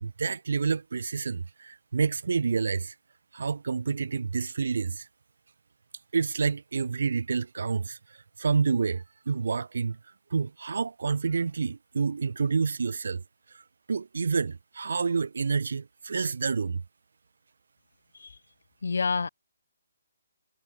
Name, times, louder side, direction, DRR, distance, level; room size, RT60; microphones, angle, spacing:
voice 1, 0.0-2.9 3.3-5.1 6.1-8.0 8.4-10.0 10.3-13.2 13.5-13.6 13.9-16.8, right 5 dB, 70° right, 2.8 m, -28 dB
voice 2, 18.8-19.3, left 4 dB, 75° left, 2.0 m, -28 dB
hypercardioid pair, 175°, 0 cm